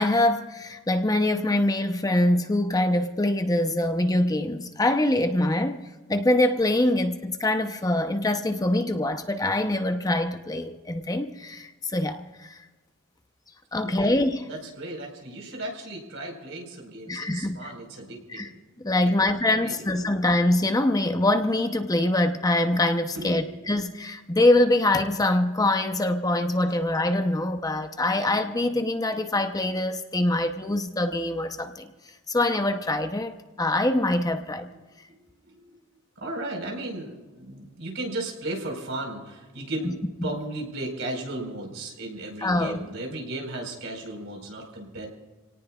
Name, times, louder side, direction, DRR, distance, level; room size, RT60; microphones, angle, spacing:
voice 1, 0.0-12.6 13.7-14.5 17.1-17.7 18.3-18.5 18.8-31.9 32.3-34.7 40.2-40.3 42.4-42.8, left 1 dB, 20° left, 6 dB, 0.8 m, -24 dB
voice 2, 13.7-14.1 14.5-18.5 18.9-19.1 19.5-20.1 23.0-23.7 35.1-35.8 36.2-45.1, right 2 dB, 65° right, 1 dB, 4.6 m, -36 dB
28.0 x 18.0 x 2.4 m, 1.2 s
head